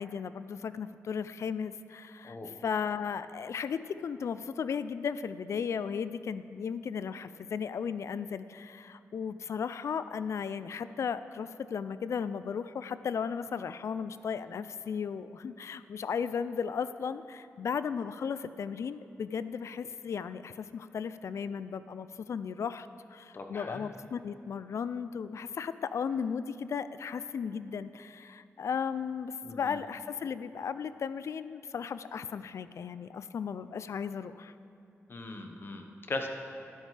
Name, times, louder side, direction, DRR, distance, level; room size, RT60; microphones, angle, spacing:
voice 1, 0.0-34.5, left 6 dB, 70° left, 13 dB, 0.3 m, -35 dB
voice 2, 23.3-23.9 29.4-29.7 35.1-36.3, left 2 dB, 45° left, 4 dB, 1.1 m, -39 dB
12.0 x 11.0 x 3.3 m, 2.8 s
cardioid pair, 70°, 5 cm